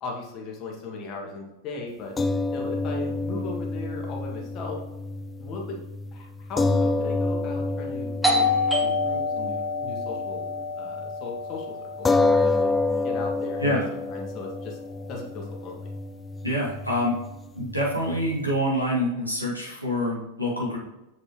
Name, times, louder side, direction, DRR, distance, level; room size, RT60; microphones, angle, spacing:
voice 1, 0.0-2.2 2.5-4.8 5.4-5.8 6.1-8.5 8.8-13.8 14.1-14.8 15.1-15.8, left 3 dB, 35° left, 0 dB, 2.0 m, -37 dB
sound 1, 2.2-10.7 11.0-11.2 12.0-18.6, left 3 dB, 15° left, 0.4 m, -28 dB
Doorbell, 8.2-13.6, left 3 dB, ahead, 1.4 m, -28 dB
voice 2, 16.4-17.1 17.5-20.8, equal, 90° left, -4 dB, 2.5 m, -26 dB
7.5 x 6.7 x 3.0 m, 0.96 s
figure-of-eight pair, 90°, 0 cm